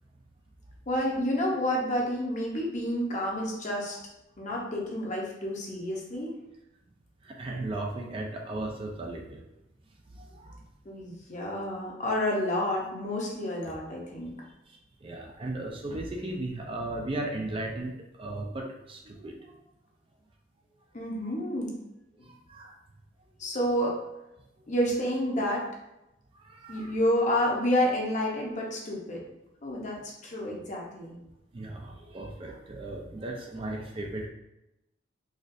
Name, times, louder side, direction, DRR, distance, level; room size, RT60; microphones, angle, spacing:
voice 1, 0.9-4.0 4.4-6.3 10.8-14.3 20.9-21.7 22.2-22.3 23.4-23.9 24.7-25.6 26.7-29.2 29.6-31.2, left 1 dB, 40° left, -2 dB, 0.8 m, -29 dB
voice 2, 7.2-9.4 10.2-10.6 15.0-19.5 22.3-22.7 26.4-26.9 31.5-34.3, right 2 dB, 30° right, 1 dB, 0.4 m, -36 dB
4.2 x 2.4 x 2.5 m, 0.91 s
head